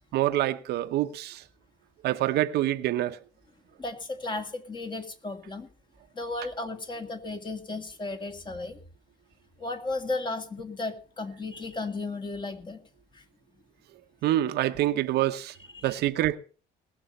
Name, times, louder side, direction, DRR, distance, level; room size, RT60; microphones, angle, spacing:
voice 1, 0.1-1.4 2.0-3.2 14.2-15.5 15.8-16.4, right 14 dB, 75° right, 0.8 m, -26 dB
voice 2, 3.8-5.7 6.1-8.8 9.6-12.8 13.1-13.3 15.7-16.0, left 2 dB, 30° left, 2.3 m, -34 dB
19.5 x 7.0 x 5.4 m
cardioid pair, 110°, 17 cm